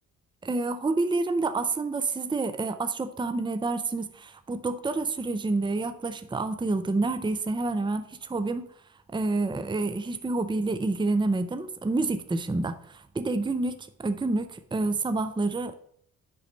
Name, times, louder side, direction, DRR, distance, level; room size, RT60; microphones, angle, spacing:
voice 1, 0.4-8.7 9.1-15.7, right 3 dB, 10° right, 0.8 m, -28 dB
10.0 x 4.1 x 6.5 m
figure-of-eight pair, 40°, 39 cm